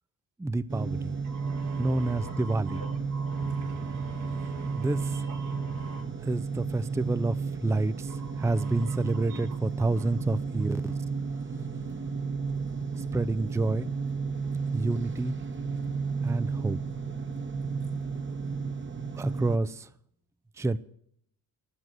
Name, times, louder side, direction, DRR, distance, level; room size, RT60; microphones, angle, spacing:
voice 1, 0.4-1.1 1.8-2.8 4.7-5.2 6.2-10.8 13.0-13.9 14.7-15.4 16.2-16.8 19.2-19.9 20.5-20.8, right 2 dB, 5° right, 0.6 m, -29 dB
sound 1, 0.7-19.6, right 5 dB, 25° right, 1.3 m, -33 dB
voice 2, 1.2-6.0 8.1-9.6 10.0-10.1, right 2 dB, 80° right, 3.6 m, -44 dB
13.0 x 7.5 x 8.0 m
hypercardioid pair, 50°, 47 cm